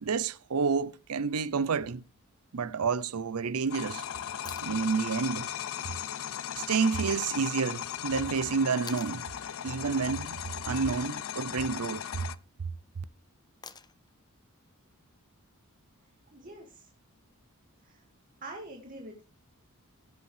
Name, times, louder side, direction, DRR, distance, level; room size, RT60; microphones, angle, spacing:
voice 1, 0.0-2.0 2.5-4.0 4.6-5.5 6.7-9.2 9.6-12.3, right 5 dB, 75° right, 0.6 m, -29 dB
sound 1, 3.7-12.4, left 9 dB, 65° left, 0.5 m, -37 dB
sound 2, 4.4-4.7 7.0-7.1 8.9-9.2 11.2-11.6 13.6-14.1 16.2-16.3, left 6 dB, 20° left, 0.7 m, -46 dB
voice 2, 16.0-16.9 17.8-18.0 18.4-19.2, right 2 dB, 40° right, 2.0 m, -45 dB
17.0 x 8.0 x 3.3 m
head